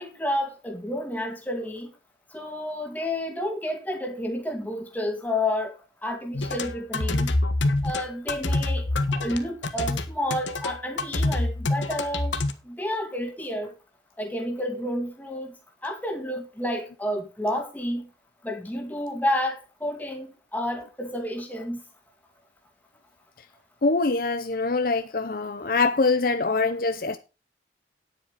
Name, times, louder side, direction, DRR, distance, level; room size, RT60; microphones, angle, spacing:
voice 1, 0.0-1.9 2.3-5.8 6.0-7.3 7.8-13.7 14.2-15.5 15.8-18.1 18.4-21.8, left 1 dB, 10° left, 2.1 m, -30 dB
sound 1, 6.3-12.5, left 2 dB, 90° left, 1.3 m, -26 dB
voice 2, 23.8-27.2, left 3 dB, 50° left, 0.7 m, -24 dB
10.0 x 8.0 x 5.1 m
head